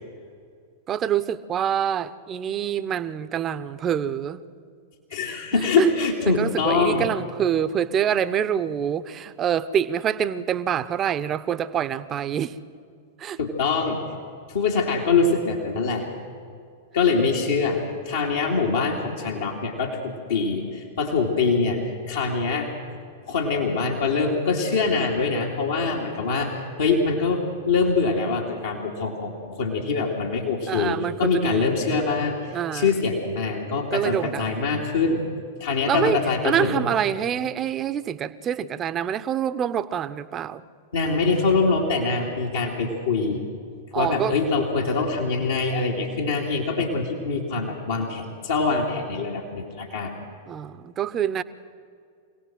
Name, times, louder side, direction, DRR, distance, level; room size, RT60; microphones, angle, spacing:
voice 1, 0.9-4.4 5.5-5.9 6.3-12.6 13.2-13.4 30.7-31.7 32.5-32.9 33.9-34.8 35.9-40.6 43.9-44.4 50.5-51.4, right 9 dB, 30° right, 0.9 m, -26 dB
voice 2, 5.1-7.0 13.4-14.0 14.5-16.1 16.9-17.8 18.0-22.7 23.3-35.2 35.6-36.8 40.9-43.4 43.9-50.1, left 4 dB, 70° left, 2.7 m, -24 dB
26.0 x 17.5 x 7.8 m
figure-of-eight pair, 95°, 0 cm